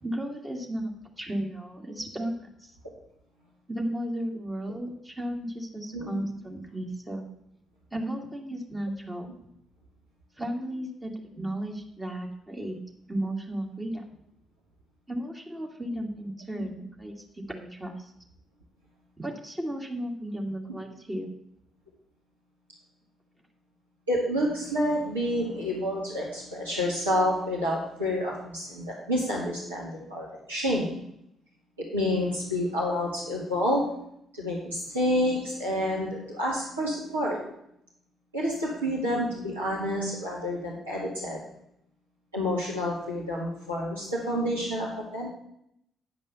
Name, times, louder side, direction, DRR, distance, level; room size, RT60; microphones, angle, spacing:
voice 1, 0.0-0.9 1.2-2.3 2.6-2.7 3.7-7.2 7.9-9.3 10.4-12.8 13.1-14.0 15.1-18.1 19.2-21.3, right 1 dB, 20° right, 0 dB, 2.0 m, -34 dB
voice 2, 24.1-31.0 31.9-33.8 34.3-37.4 38.3-41.4 42.3-45.3, equal, 90° right, -6 dB, 1.9 m, -29 dB
9.7 x 5.3 x 6.7 m, 0.76 s
figure-of-eight pair, 45°, 0 cm